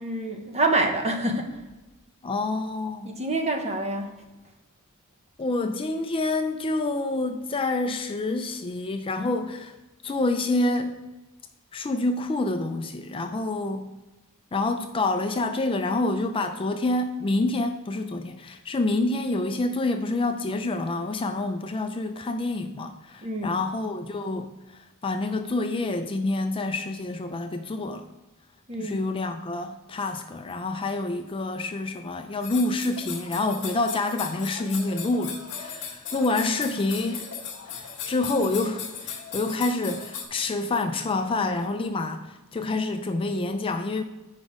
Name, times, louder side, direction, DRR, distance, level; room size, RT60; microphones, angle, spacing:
voice 1, 0.0-1.6 3.0-4.1 23.2-23.5 28.7-29.0, right 2 dB, 30° right, 4 dB, 1.0 m, -26 dB
voice 2, 2.2-3.1 5.4-9.7 10.0-11.0 11.7-13.9 14.5-24.5 25.0-28.0 28.8-37.3 37.7-44.0, left 2 dB, 25° left, 6 dB, 0.4 m, -27 dB
sound 1, 32.4-40.2, left 6 dB, 55° left, 1.6 m, -37 dB
8.1 x 5.1 x 4.9 m, 1.1 s
head